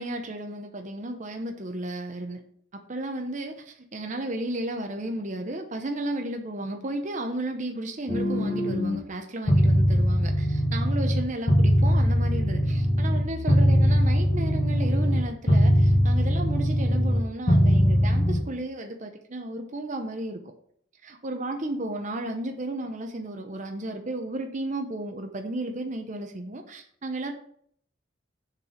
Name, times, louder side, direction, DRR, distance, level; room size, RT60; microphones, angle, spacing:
voice 1, 0.0-2.4 2.9-20.4 21.0-27.3, right 1 dB, 40° right, 4 dB, 0.8 m, -33 dB
sound 1, 8.1-9.0 9.5-11.2 11.5-15.2 15.5-17.2 17.5-18.4, equal, 35° left, 1.5 m, -21 dB
6.9 x 4.5 x 5.1 m, 0.63 s
head